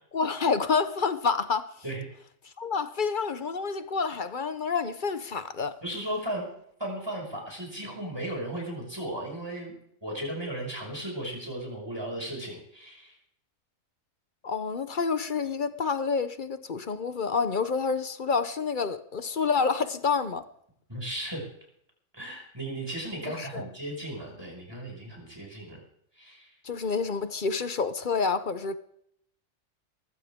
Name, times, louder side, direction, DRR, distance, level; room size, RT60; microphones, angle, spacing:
voice 1, 0.1-1.7 2.6-5.8 14.4-20.5 23.4-23.7 26.6-28.8, left 5 dB, 45° left, 0.8 m, -28 dB
voice 2, 5.8-6.5 6.8-13.2 20.9-21.4 22.1-25.8 26.1-26.5, right 1 dB, 20° right, 5.9 m, -36 dB
21.5 x 15.0 x 3.7 m
omnidirectional pair, 1.4 m